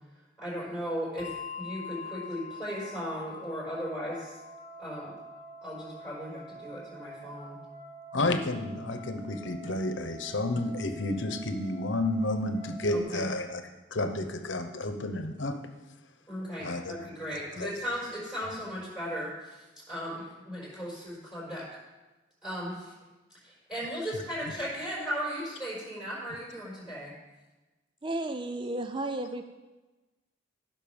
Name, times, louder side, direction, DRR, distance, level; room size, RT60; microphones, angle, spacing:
voice 1, 0.4-1.3 1.6-4.3 4.8-5.1 5.6-7.6 12.9-13.2 16.3-19.6 19.9-21.6 22.4-22.9 23.4-27.1, equal, 5° right, -7 dB, 4.6 m, -36 dB
Bell, 1.2-8.0, left 6 dB, 45° left, 0.7 m, -46 dB
sound 1, 4.3-13.0, right 3 dB, 50° right, 2.1 m, -48 dB
voice 2, 8.1-13.6 13.9-15.6 16.6-17.7 24.1-24.2, left 2 dB, 70° left, 7 dB, 1.0 m, -31 dB
voice 3, 28.0-29.5, right 2 dB, 25° right, 7 dB, 0.5 m, -33 dB
15.0 x 6.0 x 5.3 m, 1.1 s
head